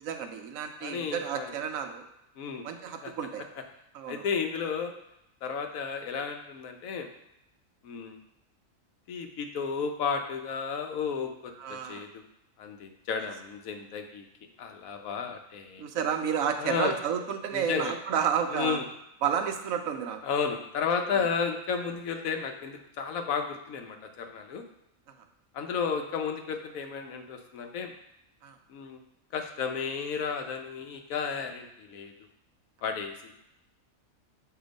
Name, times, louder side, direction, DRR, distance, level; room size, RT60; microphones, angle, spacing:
voice 1, 0.0-2.1 2.6-3.4 3.9-4.3 11.6-12.1 15.8-18.8 19.2-20.2 21.2-21.3 28.4-28.6, right 7 dB, 85° right, 6 dB, 1.1 m, -31 dB
voice 2, 0.8-1.6 2.4-2.7 3.0-3.1 4.1-4.9 5.4-7.1 7.8-8.2 9.1-12.2 12.6-14.3 14.6-15.9 16.6-17.0 17.5-17.9 18.5-18.9 20.2-24.6 25.5-27.9 28.7-29.0 29.3-32.1 32.8-33.4, left 6 dB, 85° left, 5 dB, 1.1 m, -33 dB
6.4 x 2.9 x 5.1 m, 0.84 s
omnidirectional pair, 1.4 m